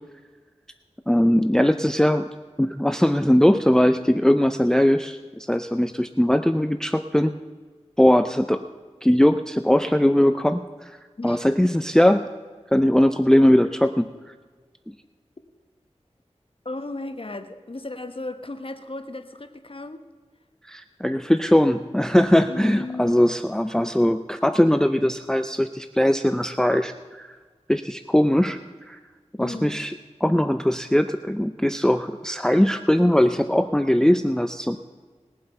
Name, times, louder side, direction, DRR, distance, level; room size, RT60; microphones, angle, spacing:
voice 1, 1.1-2.3 2.6-7.3 8.0-8.6 9.0-11.0 11.2-12.3 12.7-14.1 14.9-15.0 20.6-27.4 27.7-28.6 28.9-29.0 29.4-29.9 30.2-34.8, left 1 dB, 5° left, 9 dB, 0.5 m, -20 dB
voice 2, 16.6-20.1 22.5-23.4 29.4-29.8, left 2 dB, 50° left, 8 dB, 1.1 m, -35 dB
20.5 x 7.6 x 5.5 m, 1.5 s
wide cardioid pair, 60°, 12 cm